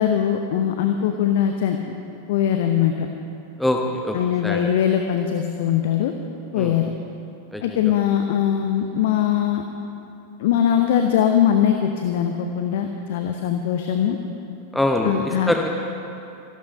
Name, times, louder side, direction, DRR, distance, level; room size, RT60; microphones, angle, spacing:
voice 1, 0.0-1.8 2.3-3.1 4.1-6.1 6.5-6.9 7.6-9.6 10.4-14.2 15.0-15.5, left 9 dB, 55° left, 5 dB, 0.8 m, -21 dB
voice 2, 7.5-7.9 14.7-15.7, left 1 dB, 5° left, 1 dB, 1.0 m, -23 dB
15.0 x 12.0 x 5.4 m, 2.7 s
figure-of-eight pair, 90°, 0 cm